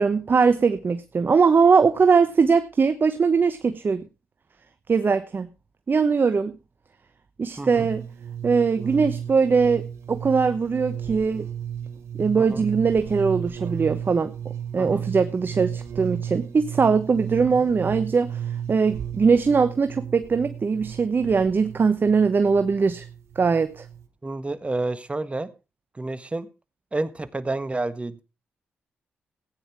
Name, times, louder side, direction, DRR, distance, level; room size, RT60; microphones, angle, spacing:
voice 1, 0.0-4.0 4.9-5.5 5.9-6.5 7.4-8.0 8.4-11.5 12.2-14.3 14.7-18.4 18.7-23.0 23.4-23.8, right 5 dB, 50° right, 11 dB, 1.0 m, -21 dB
sound 1, 7.7-24.1, right 9 dB, 75° right, 1.6 m, -34 dB
voice 2, 24.2-25.5 25.9-26.5 26.9-28.2, right 2 dB, 25° right, 13 dB, 1.5 m, -29 dB
15.0 x 9.5 x 4.7 m, 0.30 s
supercardioid pair, 45°, 5 cm